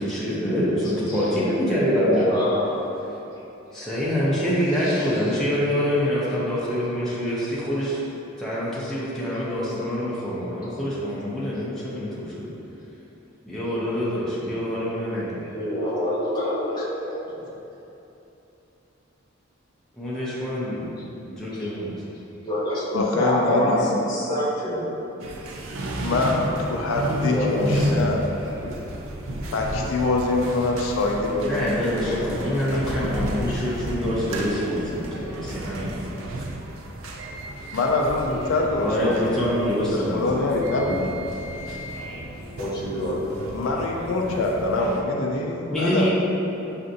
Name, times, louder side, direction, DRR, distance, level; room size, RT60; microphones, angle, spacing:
voice 1, 0.0-2.3 3.7-8.0 8.4-12.5 13.5-15.4 20.0-20.9 21.2-22.0 31.4-36.3 38.8-41.1 45.7-46.1, equal, 5° left, -9 dB, 0.5 m, -26 dB
voice 2, 1.9-2.7 4.8-5.1 15.5-17.1 21.6-21.7 22.5-25.0 27.2-27.9 33.5-33.6 41.7-41.8 42.6-43.3, equal, 20° left, -9 dB, 0.9 m, -26 dB
voice 3, 22.9-24.0 26.0-28.3 29.5-32.4 32.7-33.2 37.7-39.6 39.9-41.0 43.5-46.1, left 2 dB, 80° left, 0 dB, 0.4 m, -25 dB
sound 1, 25.2-45.0, equal, 75° right, 0.4 m, -32 dB
5.5 x 2.5 x 2.6 m, 3.0 s
head